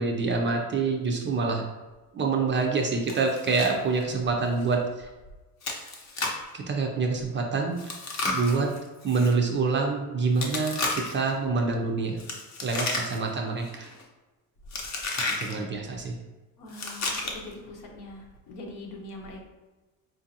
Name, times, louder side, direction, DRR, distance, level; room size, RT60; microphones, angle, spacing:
voice 1, 0.0-1.6 2.1-5.1 6.5-7.8 8.3-8.7 9.0-12.2 12.6-13.9 15.2-16.2, right 4 dB, 30° right, 1 dB, 0.4 m, -26 dB
Chewing mastication, 3.1-3.7 4.0-4.1 4.6-4.7 5.6-6.5 7.8-9.3 10.4-11.3 12.2-13.4 13.6-14.0 14.7-15.5 16.7-17.5, left 3 dB, 40° left, 0.8 m, -32 dB
voice 2, 16.6-19.4, left 2 dB, 70° left, 1 dB, 0.9 m, -42 dB
4.5 x 2.5 x 2.7 m, 1.2 s
cardioid pair, 125°, 40 cm